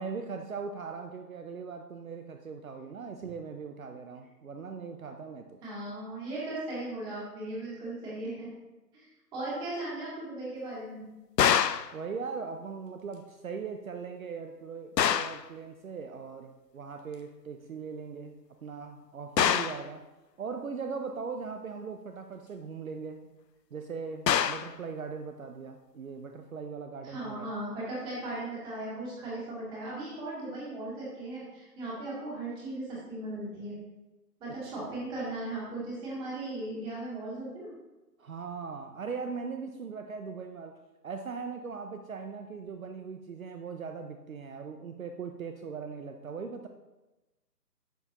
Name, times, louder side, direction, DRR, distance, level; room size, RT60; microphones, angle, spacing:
voice 1, 0.0-5.6 11.9-20.1 20.4-23.3 23.7-27.5 34.6-34.7 38.2-40.8 41.0-46.7, right 5 dB, 55° right, 6 dB, 0.7 m, -39 dB
voice 2, 5.6-8.5 8.9-9.1 9.3-11.1 27.0-33.7 34.4-37.7, right 2 dB, 10° right, -7 dB, 2.0 m, -37 dB
sound 1, 11.4-11.9 15.0-15.4 19.4-19.8 24.3-24.7, left 9 dB, 80° left, 0.6 m, -25 dB
11.5 x 6.8 x 2.9 m, 1.1 s
hypercardioid pair, 155°, 49 cm